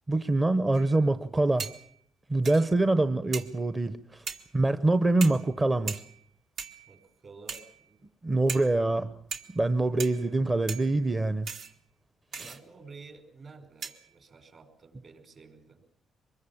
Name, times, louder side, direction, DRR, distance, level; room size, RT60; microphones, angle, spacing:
voice 1, 0.1-1.7 2.3-4.2 4.5-6.0 8.2-9.1 9.5-11.5 12.3-12.5, right 2 dB, 25° right, 0.9 m, -25 dB
sound 1, 0.7-1.1 1.6-2.0 2.4-2.9 3.3-3.7 4.3-4.6 5.2-5.6 5.9-6.3 6.6-7.1 7.5-7.9 8.5-8.9 9.3-9.7 10.0-10.4 10.7-11.1 11.5-11.8 12.3-12.6 13.8-14.1, right 5 dB, 70° right, 2.2 m, -40 dB
voice 2, 6.9-8.0 8.7-9.2 12.4-15.8, right 4 dB, 50° right, 5.2 m, -51 dB
24.5 x 21.5 x 7.2 m
cardioid pair, 90°, 0 cm